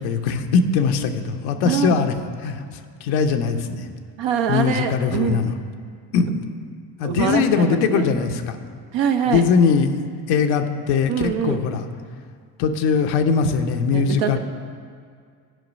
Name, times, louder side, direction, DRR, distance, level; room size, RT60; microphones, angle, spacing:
voice 1, 0.0-2.2 2.4-3.8 4.5-5.5 6.1-6.3 7.0-8.6 9.3-9.9 10.3-11.8 12.6-14.4, left 5 dB, 85° left, 6 dB, 0.8 m, -21 dB
voice 2, 1.6-2.0 4.2-5.4 7.0-8.1 8.9-9.5 11.1-11.6 13.9-14.4, right 7 dB, 65° right, 6 dB, 0.9 m, -23 dB
11.0 x 5.2 x 5.2 m, 2.1 s
supercardioid pair, 65°, 47 cm